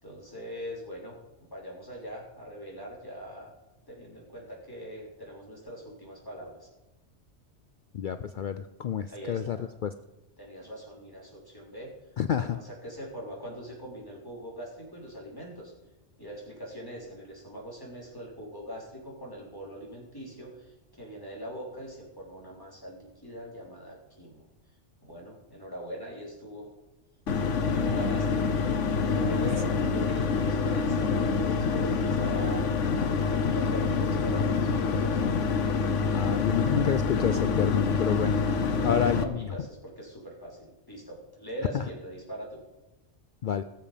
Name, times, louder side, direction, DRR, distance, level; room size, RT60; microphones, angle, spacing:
voice 1, 0.0-3.5 3.9-6.7 9.1-9.7 10.4-11.9 12.3-15.7 16.2-24.5 25.0-26.7 27.6-28.5 29.1-35.2 38.6-42.6, equal, 20° left, -3 dB, 3.7 m, -42 dB
voice 2, 7.9-9.6 9.8-9.9 12.2-12.6 36.1-38.4 38.8-39.4 41.7-41.8 43.4-43.6, left 8 dB, 60° left, 11 dB, 0.5 m, -28 dB
sound 1, 27.3-39.2, left 5 dB, 90° left, 1.3 m, -26 dB
19.0 x 7.5 x 5.1 m, 1.0 s
omnidirectional pair, 1.2 m